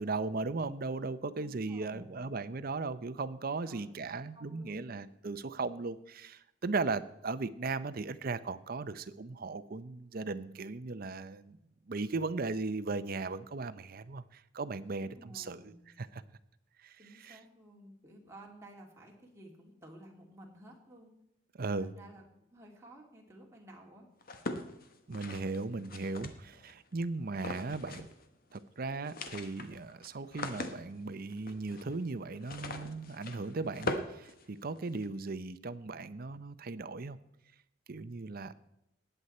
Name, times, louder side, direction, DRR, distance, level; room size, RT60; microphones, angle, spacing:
voice 1, 0.0-11.6 11.9-15.7 16.0-16.2 16.8-17.4 21.6-21.9 25.1-28.1 28.5-37.2 37.9-38.5, right 3 dB, 50° right, 13 dB, 0.6 m, -37 dB
voice 2, 1.4-2.3 3.6-5.0 14.8-15.8 17.0-21.1 21.8-24.1, right 1 dB, 15° right, -1 dB, 2.6 m, -54 dB
sound 1, 24.2-26.7 27.3-28.3 28.5-28.6 28.9-35.1, left 2 dB, 50° left, 1.2 m, -41 dB
19.0 x 8.0 x 4.3 m, 0.83 s
head